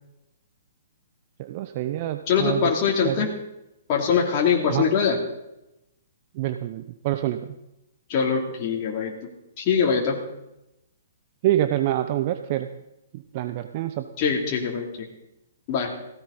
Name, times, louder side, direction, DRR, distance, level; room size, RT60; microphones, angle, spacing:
voice 1, 1.4-2.7 3.0-3.3 4.7-4.8 6.3-7.5 11.4-12.7 13.1-14.1, right 13 dB, 40° right, 9 dB, 0.8 m, -26 dB
voice 2, 2.3-3.3 3.9-5.2 8.1-9.1 9.6-10.2 14.2-14.9 15.7-15.9, left 6 dB, 35° left, -1 dB, 3.2 m, -22 dB
17.0 x 16.5 x 4.2 m, 0.89 s
figure-of-eight pair, 120°, 0 cm